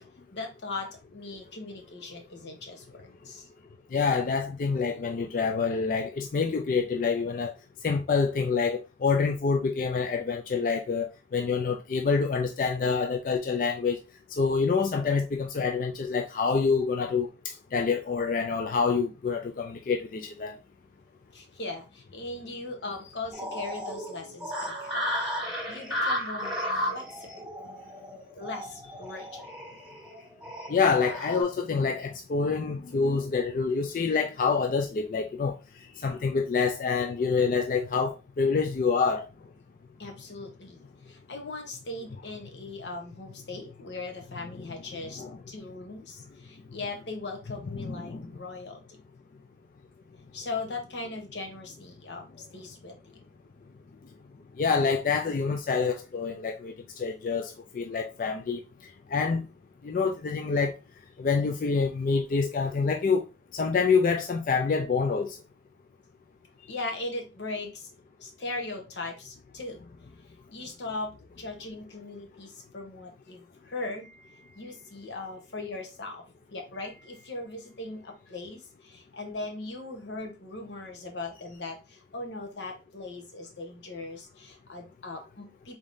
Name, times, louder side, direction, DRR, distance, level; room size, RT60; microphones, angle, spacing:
voice 1, 0.3-3.5 21.3-26.6 26.9-27.4 28.3-29.5 40.0-49.0 50.3-53.0 66.7-67.9 68.2-69.8 70.5-76.2 76.5-85.8, left 2 dB, 85° left, 1.0 m, -39 dB
voice 2, 3.9-7.5 7.8-14.0 14.3-20.6 30.7-35.6 36.0-39.3 45.2-45.4 47.8-48.3 54.6-58.6 59.1-59.5 59.8-60.8 61.2-63.2 63.5-65.4, left 5 dB, 50° left, 0.3 m, -27 dB
sound 1, 23.3-31.4, equal, 5° right, 1.3 m, -34 dB
3.7 x 3.6 x 2.6 m
head